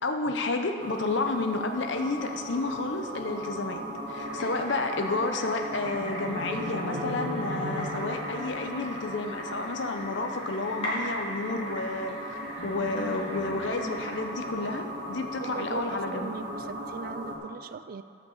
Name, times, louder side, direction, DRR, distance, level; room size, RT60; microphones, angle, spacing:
voice 1, 0.0-3.8 4.1-12.1 12.6-16.3, left 3 dB, 70° left, 6 dB, 0.7 m, -31 dB
sound 1, 0.8-17.4, equal, 70° right, 1.7 m, -36 dB
sound 2, 4.1-14.2, equal, 30° left, 2.3 m, -41 dB
voice 2, 15.4-18.0, right 5 dB, 50° right, 13 dB, 0.3 m, -39 dB
11.0 x 5.2 x 7.0 m, 2.5 s
head